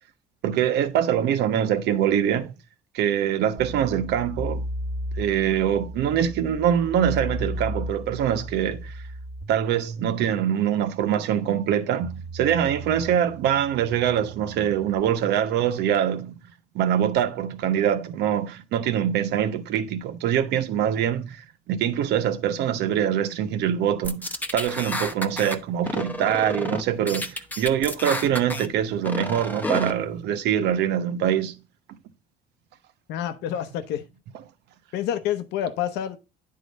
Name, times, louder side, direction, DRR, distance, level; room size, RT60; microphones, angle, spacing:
voice 1, 0.4-2.5 2.9-4.7 5.2-9.0 9.5-16.3 16.7-31.6, right 9 dB, 80° right, 1.0 m, -24 dB
sound 1, 3.6-15.0, equal, 15° right, 1.4 m, -36 dB
sound 2, 24.0-25.6 25.9-26.8 27.1-28.7 29.0-29.9, left 1 dB, 10° left, 0.8 m, -30 dB
voice 2, 33.1-34.0 34.9-36.2, left 10 dB, 85° left, 0.8 m, -28 dB
9.9 x 3.8 x 5.1 m
cardioid pair, 110°, 17 cm